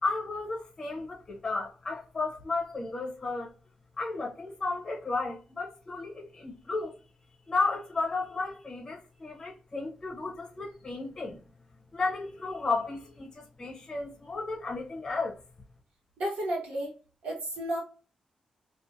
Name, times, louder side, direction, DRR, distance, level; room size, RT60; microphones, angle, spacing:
voice 1, 0.0-3.5 4.0-7.0 7.5-11.4 11.9-15.4, left 3 dB, 25° left, 0.6 m, -33 dB
voice 2, 16.2-16.9 17.2-17.8, right 1 dB, 80° right, 1.2 m, -32 dB
2.4 x 2.3 x 2.6 m
wide cardioid pair, 140°, 2 cm